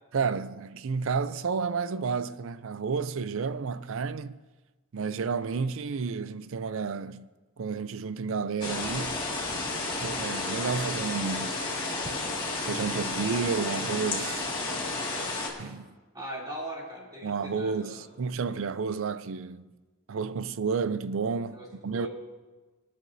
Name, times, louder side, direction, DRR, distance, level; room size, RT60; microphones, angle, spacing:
voice 1, 0.1-4.4 4.9-7.3 7.6-9.2 10.0-11.6 12.6-14.5 15.6-15.9 17.2-19.7 20.1-22.1, right 5 dB, 65° right, 0.5 m, -31 dB
sound 1, 8.6-15.5, left 2 dB, 20° left, 2.1 m, -32 dB
voice 2, 16.1-18.0 21.5-21.7 21.9-22.1, right 1 dB, 20° right, 3.0 m, -39 dB
25.5 x 9.5 x 2.7 m
head